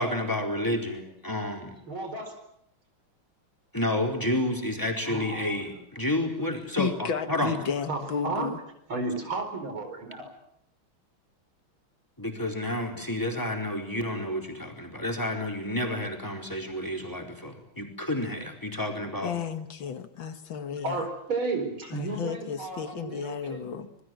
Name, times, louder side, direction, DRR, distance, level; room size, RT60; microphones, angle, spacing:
voice 1, 0.0-1.8 3.7-7.5 12.2-19.3, left 1 dB, 10° left, 4.4 m, -30 dB
voice 2, 1.9-2.4 5.0-5.6 7.9-8.5 8.9-10.3 20.8-23.8, right 3 dB, 75° right, 5.4 m, -33 dB
voice 3, 6.8-8.6 19.2-21.0 21.9-23.9, left 7 dB, 70° left, 2.2 m, -33 dB
27.0 x 21.5 x 7.8 m
omnidirectional pair, 2.3 m